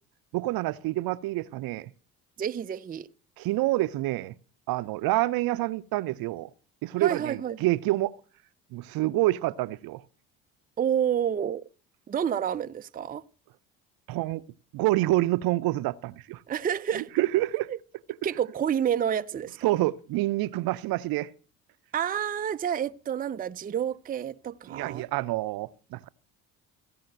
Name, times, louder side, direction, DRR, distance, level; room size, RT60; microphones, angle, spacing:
voice 1, 0.3-1.9 3.4-4.3 4.7-6.5 6.8-8.1 8.7-10.0 14.1-14.4 14.7-16.4 16.9-17.7 19.6-21.3 24.7-26.1, right 17 dB, 60° right, 0.7 m, -27 dB
voice 2, 2.4-3.1 7.0-7.6 10.8-11.7 12.1-13.2 16.5-17.2 17.7-17.8 18.2-19.7 21.9-25.0, right 9 dB, 20° right, 0.5 m, -29 dB
15.5 x 5.7 x 7.8 m
hypercardioid pair, 55°, 41 cm